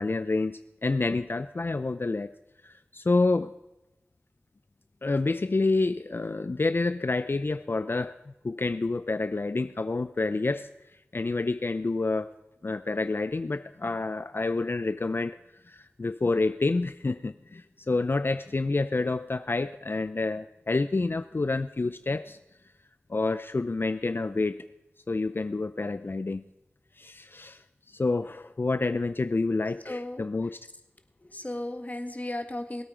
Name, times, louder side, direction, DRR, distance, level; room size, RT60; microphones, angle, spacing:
voice 1, 0.0-2.3 2.6-3.5 5.0-8.2 8.4-10.7 11.1-12.3 12.6-15.4 15.6-22.4 23.1-24.6 25.1-26.4 27.0-30.6, left 3 dB, 50° left, 13 dB, 0.4 m, -28 dB
voice 2, 29.9-30.2 31.2-32.8, left 1 dB, 35° left, 7 dB, 1.6 m, -35 dB
20.5 x 8.7 x 5.0 m, 0.93 s
wide cardioid pair, 45°, 5 cm